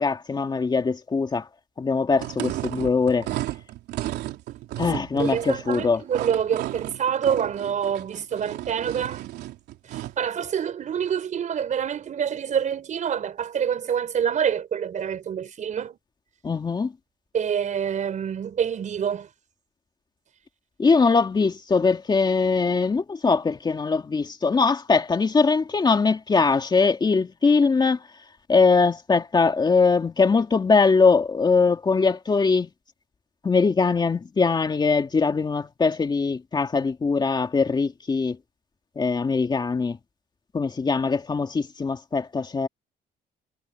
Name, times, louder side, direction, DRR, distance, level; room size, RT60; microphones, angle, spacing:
voice 1, 0.0-1.5 1.8-3.3 4.8-6.0 16.4-16.9 20.8-28.0 28.5-32.7 33.4-38.4 39.0-40.0 40.5-42.7, left 4 dB, 25° left, 2.4 m, -21 dB
sound 1, 2.1-10.2, right 15 dB, 80° right, 3.4 m, -33 dB
voice 2, 5.2-9.3 9.8-16.0 17.3-19.3, right 8 dB, 45° right, 4.9 m, -26 dB
cardioid pair, 110°, 17 cm